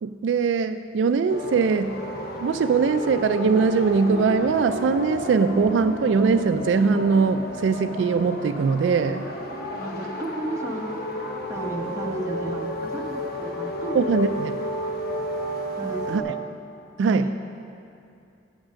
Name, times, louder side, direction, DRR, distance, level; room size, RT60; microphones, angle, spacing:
voice 1, 0.0-2.0 2.4-9.2 13.9-14.6 16.1-16.3 17.0-17.3, right 5 dB, 75° right, 10 dB, 0.3 m, -21 dB
sound 1, 1.3-16.2, left 1 dB, 55° left, 1.0 m, -32 dB
voice 2, 9.8-10.9 11.5-14.0 15.8-16.4 17.2-17.3, right 1 dB, 15° right, -1 dB, 0.9 m, -33 dB
8.8 x 7.2 x 6.2 m, 2.6 s
head